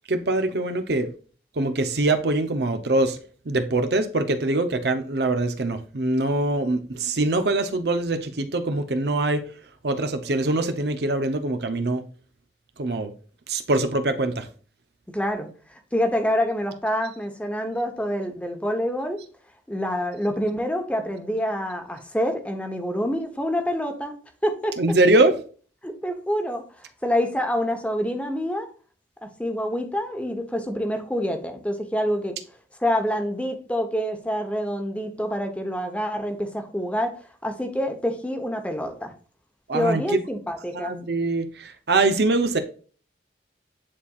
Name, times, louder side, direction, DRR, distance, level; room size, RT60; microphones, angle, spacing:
voice 1, 0.1-1.1 1.6-3.2 3.5-9.4 9.8-12.0 12.8-13.1 13.5-14.5 24.8-25.4 39.7-40.2 40.7-42.6, right 2 dB, 65° right, 0.7 m, -23 dB
voice 2, 15.1-19.2 19.7-24.1 24.4-24.7 25.8-28.7 29.2-32.4 32.8-37.1 37.4-39.1 39.7-40.9, equal, 5° left, 0.9 m, -27 dB
9.8 x 4.2 x 2.4 m
head